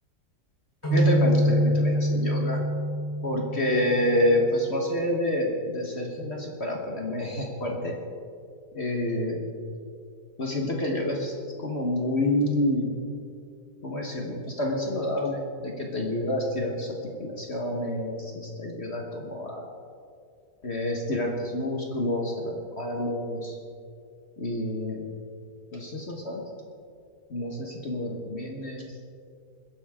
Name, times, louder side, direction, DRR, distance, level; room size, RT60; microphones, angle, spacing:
sound 1, 0.8-4.4, equal, 15° left, 4.3 m, -25 dB
voice 1, 0.9-2.6 3.2-7.9 8.7-9.4 10.4-11.3 11.6-12.9 13.8-19.6 20.6-23.6 24.4-25.0 25.7-26.4 27.3-28.9, left 1 dB, 40° left, 0 dB, 1.5 m, -28 dB
21.5 x 11.0 x 3.6 m, 2.3 s
omnidirectional pair, 1.8 m